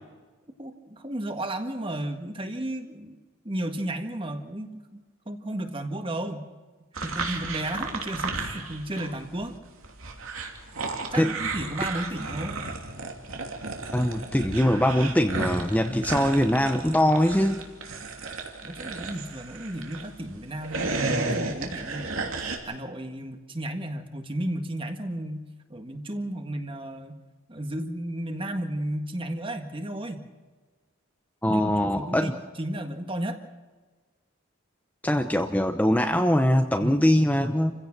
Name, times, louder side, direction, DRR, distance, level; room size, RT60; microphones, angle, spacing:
voice 1, 0.6-3.2 3.4-6.5 7.0-9.5 11.1-12.6 18.6-27.2 27.5-30.2 31.5-32.3 32.6-33.4 36.8-37.0, right 1 dB, 25° right, 6 dB, 1.7 m, -33 dB
sound 1, 7.0-9.2 9.4-20.1 20.5-22.6, right 3 dB, 85° right, 2.9 m, -33 dB
voice 2, 13.9-17.6 31.4-32.3 35.0-37.7, left 1 dB, 10° left, 5 dB, 0.8 m, -22 dB
28.5 x 16.0 x 6.0 m, 1.3 s
head